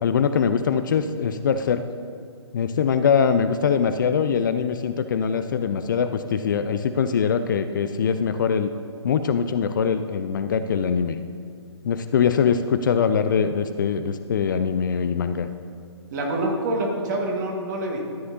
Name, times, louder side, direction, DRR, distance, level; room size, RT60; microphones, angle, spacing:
voice 1, 0.0-1.8 2.5-8.7 9.0-11.2 11.8-15.5, left 6 dB, 45° left, 9 dB, 0.4 m, -22 dB
voice 2, 16.1-18.1, right 1 dB, 40° right, 0 dB, 1.7 m, -26 dB
13.0 x 9.3 x 2.8 m, 2.1 s
figure-of-eight pair, 130°, 15 cm